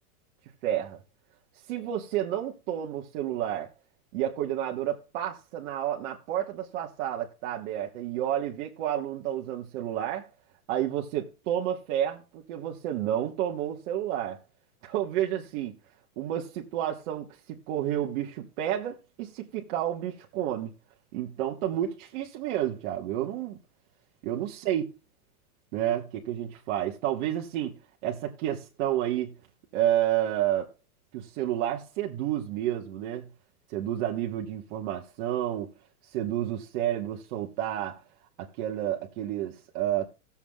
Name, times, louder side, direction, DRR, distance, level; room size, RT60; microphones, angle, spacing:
voice 1, 0.6-1.0 1.7-3.7 4.1-10.3 10.7-14.4 14.8-15.7 16.2-20.7 21.1-23.6 24.2-24.8 25.7-27.8 28.0-29.3 29.7-30.7 31.1-33.3 33.7-35.7 36.0-38.0 38.4-40.1, right 11 dB, 55° right, 1.4 m, -30 dB
17.5 x 7.2 x 2.3 m
hypercardioid pair, 125°, 44 cm